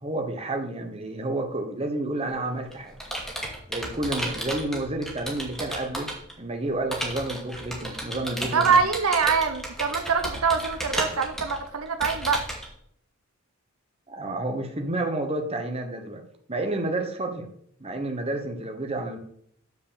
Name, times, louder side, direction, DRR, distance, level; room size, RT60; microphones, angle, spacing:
voice 1, 0.0-2.9 3.7-6.1 6.4-8.8 14.1-16.2 16.5-17.5 17.8-19.2, right 2 dB, 25° right, 4 dB, 1.1 m, -30 dB
Computer keyboard, 2.3-6.3 6.9-12.7, right 1 dB, ahead, 2.1 m, -33 dB
voice 2, 8.5-12.4, right 5 dB, 75° right, 8 dB, 0.7 m, -24 dB
8.3 x 4.8 x 7.0 m, 0.67 s
head